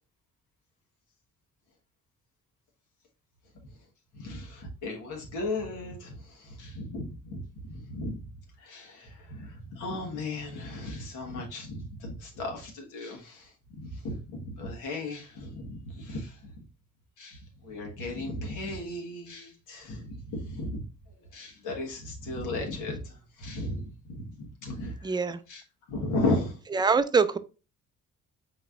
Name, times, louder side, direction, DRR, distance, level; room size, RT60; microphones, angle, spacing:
voice 1, 4.1-8.2 8.6-16.7 17.2-20.8 21.3-25.1 25.5-25.6 25.9-26.6, left 2 dB, 90° left, 1.4 m, -35 dB
voice 2, 25.0-25.4 26.7-27.4, right 5 dB, 15° right, 0.3 m, -24 dB
4.3 x 3.9 x 2.4 m
cardioid pair, 90°, 30 cm